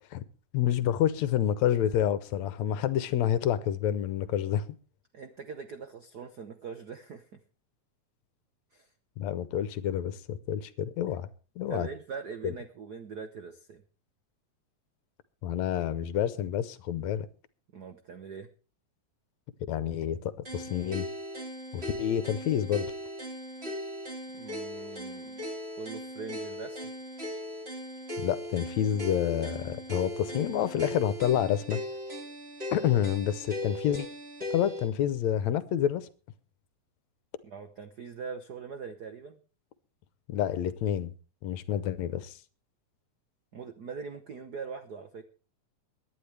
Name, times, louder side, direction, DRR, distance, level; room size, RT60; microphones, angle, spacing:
voice 1, 0.5-4.6 9.2-11.3 11.6-11.9 15.4-17.3 19.7-21.1 21.7-22.9 28.2-31.8 32.7-34.1 34.5-36.1 40.3-41.1 41.4-42.3, left 10 dB, 75° left, 2.0 m, -28 dB
voice 2, 5.1-7.3 8.7-8.9 11.7-13.8 17.7-18.5 24.3-25.4 25.8-26.8 37.4-39.4 43.5-45.2, right 5 dB, 80° right, 0.9 m, -42 dB
sound 1, 20.4-34.9, equal, 20° right, 3.3 m, -38 dB
23.0 x 10.5 x 3.4 m
omnidirectional pair, 3.4 m